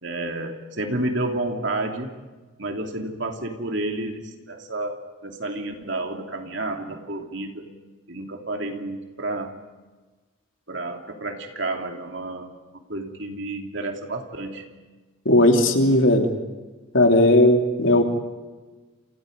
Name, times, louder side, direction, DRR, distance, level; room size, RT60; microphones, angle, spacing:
voice 1, 0.0-2.2 2.6-7.7 8.1-9.6 10.7-12.6 12.9-14.6, right 2 dB, 55° right, 3 dB, 3.0 m, -30 dB
voice 2, 15.2-16.3 16.9-18.0, left 1 dB, 60° left, 3 dB, 3.1 m, -16 dB
28.5 x 28.5 x 5.4 m, 1.3 s
head